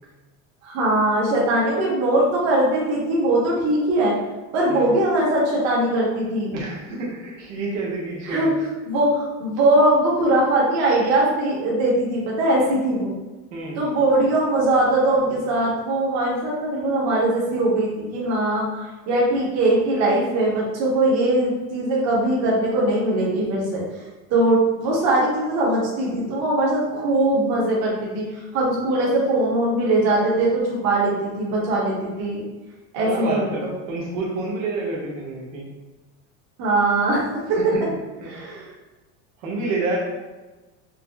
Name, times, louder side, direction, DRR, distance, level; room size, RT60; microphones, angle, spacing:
voice 1, 0.6-4.2 4.5-6.5 8.3-8.5 8.8-13.1 13.7-23.8 24.3-32.4 32.9-33.7 36.6-37.6 38.3-38.7, right 1 dB, 45° right, -5 dB, 1.1 m, -21 dB
voice 2, 6.5-8.6 13.5-13.8 33.0-35.7 37.5-37.8 38.2-38.3 39.4-40.0, right 3 dB, 80° right, -4 dB, 1.0 m, -28 dB
5.1 x 2.0 x 2.2 m, 1.2 s
supercardioid pair, 135°, 38 cm